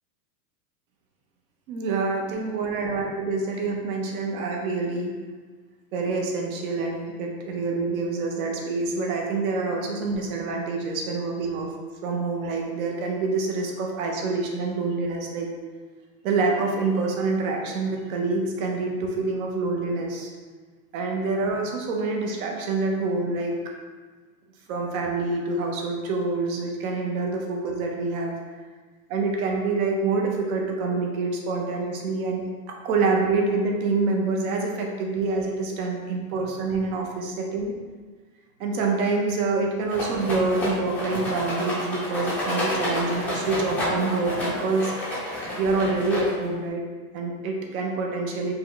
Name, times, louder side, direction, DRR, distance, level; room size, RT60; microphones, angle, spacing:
voice 1, 1.7-5.1 5.9-11.7 12.0-15.5 16.2-20.3 20.9-23.6 24.7-28.3 29.1-37.7 38.6-44.9 45.6-46.8 47.1-48.5, right 3 dB, 60° right, 1 dB, 1.0 m, -26 dB
Rattle, 39.9-46.6, left 1 dB, 5° left, 0.5 m, -29 dB
4.9 x 2.2 x 4.0 m, 1.4 s
supercardioid pair, 155°, 47 cm